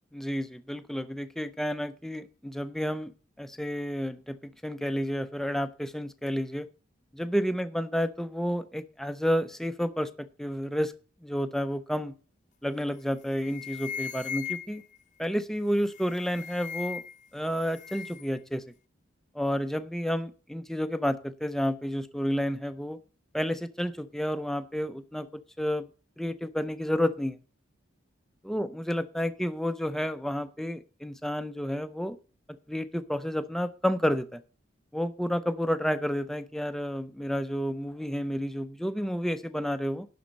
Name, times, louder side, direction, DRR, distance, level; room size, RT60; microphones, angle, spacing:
voice 1, 0.1-3.1 3.4-6.7 7.1-10.9 11.2-12.2 12.6-14.8 15.2-17.0 17.3-18.6 19.3-23.0 23.3-25.9 26.2-27.4 28.4-32.2 32.7-34.4 34.9-40.1, equal, ahead, 11 dB, 0.5 m, -30 dB
sound 1, 12.8-13.0 13.3-15.0 15.8-17.3 17.5-18.3, left 8 dB, 40° left, 0.7 m, -38 dB
11.5 x 4.2 x 7.3 m, 0.38 s
head